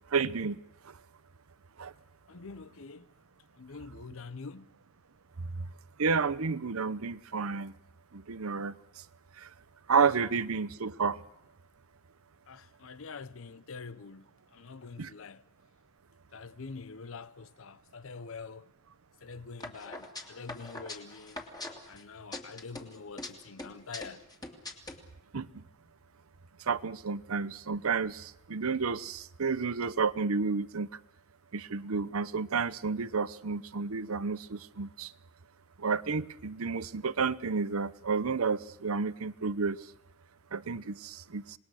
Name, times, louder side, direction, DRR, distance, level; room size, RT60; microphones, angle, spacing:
voice 1, 0.1-0.6 1.8-1.9 6.0-7.7 8.1-8.7 9.9-11.2 15.0-15.1 25.3-25.5 26.7-30.9 31.5-35.1 35.8-39.8 40.5-41.4, right 5 dB, 85° right, 0.8 m, -31 dB
voice 2, 2.3-3.1 3.6-4.7 12.5-15.4 16.3-18.7 19.2-21.4 21.9-24.3, left 4 dB, 70° left, 0.8 m, -45 dB
sound 1, 19.6-22.0 22.3-23.3 23.6-25.0, left 2 dB, 20° left, 2.6 m, -42 dB
26.5 x 20.0 x 6.4 m
head